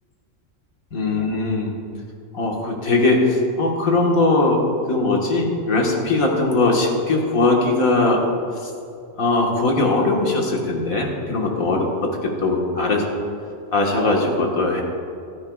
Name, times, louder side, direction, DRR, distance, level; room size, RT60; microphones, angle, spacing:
voice 1, 0.9-1.7 2.3-4.6 4.9-8.2 8.6-8.7 9.2-13.1 13.7-14.8, left 2 dB, 85° left, 0 dB, 2.0 m, -20 dB
15.5 x 13.0 x 2.4 m, 2.5 s
omnidirectional pair, 1.4 m